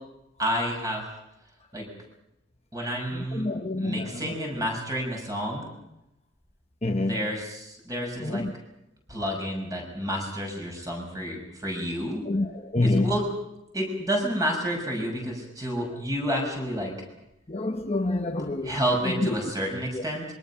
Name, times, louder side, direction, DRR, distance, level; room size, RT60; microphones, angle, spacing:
voice 1, 0.4-1.0 1.7-1.9 2.7-3.5 3.8-5.7 7.0-8.4 9.1-12.2 12.8-13.3 13.7-16.9 18.6-20.2, equal, 20° right, 1 dB, 6.1 m, -30 dB
voice 2, 3.1-4.6 6.8-7.2 8.2-8.5 12.3-13.1 17.5-18.8 19.2-19.3 19.9-20.0, left 2 dB, 30° left, 4 dB, 1.0 m, -27 dB
26.0 x 23.0 x 5.8 m, 0.86 s
head